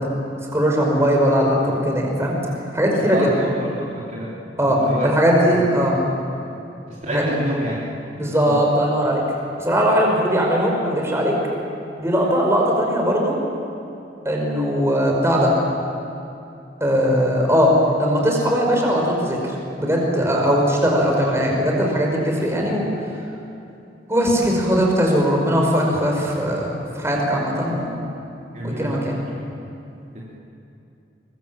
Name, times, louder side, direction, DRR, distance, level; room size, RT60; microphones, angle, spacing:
voice 1, 0.5-2.3 2.7-3.3 4.6-6.0 7.1-7.2 8.2-9.2 9.6-11.3 12.0-13.4 14.2-15.5 16.8-19.4 19.7-22.9 24.1-27.9 28.6-29.2, equal, 15° right, -1 dB, 5.0 m, -19 dB
voice 2, 3.0-3.7 4.1-4.3 4.6-5.1 5.5-5.6 6.9-7.8 8.4-8.6 28.5-29.3 30.1-30.2, equal, 40° right, -5 dB, 3.3 m, -28 dB
23.5 x 22.0 x 7.5 m, 2.7 s
head